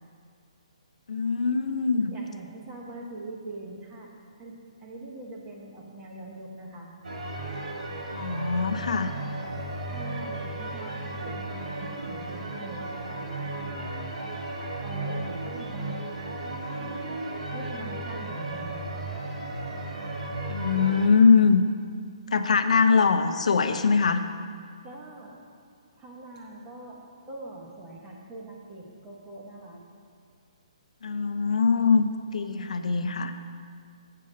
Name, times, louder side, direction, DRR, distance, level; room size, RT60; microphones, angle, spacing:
voice 1, 1.1-2.1 8.1-9.1 20.5-21.6 22.3-24.2 31.0-33.3, left 5 dB, 80° left, 9 dB, 0.5 m, -22 dB
voice 2, 2.1-4.1 4.4-6.9 9.4-13.8 14.8-16.0 17.5-18.8 22.3-22.6 24.8-25.4 26.0-29.8 32.4-32.8, right 2 dB, 15° right, -2 dB, 0.9 m, -43 dB
sound 1, 7.0-21.1, right 2 dB, 80° right, 1.5 m, -35 dB
7.5 x 5.6 x 6.4 m, 2.1 s
hypercardioid pair, 175°, 4 cm